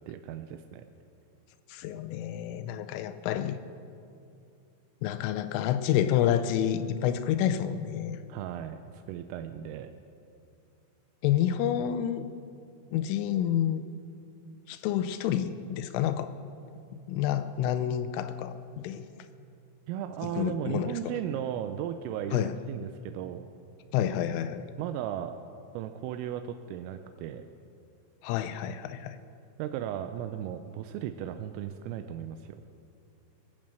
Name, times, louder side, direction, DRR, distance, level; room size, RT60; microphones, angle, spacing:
voice 1, 0.1-0.8 8.3-9.9 19.9-23.4 24.8-25.4 25.7-27.5 29.6-32.5, right 10 dB, 85° right, 8 dB, 3.3 m, -36 dB
voice 2, 1.7-3.6 5.0-8.2 11.2-12.3 12.9-13.9 14.7-16.3 17.1-19.1 20.2-21.1 22.3-22.5 23.9-24.6 28.2-29.2, left 10 dB, 85° left, 11 dB, 3.1 m, -29 dB
20.5 x 8.8 x 7.5 m, 2.5 s
omnidirectional pair, 5.8 m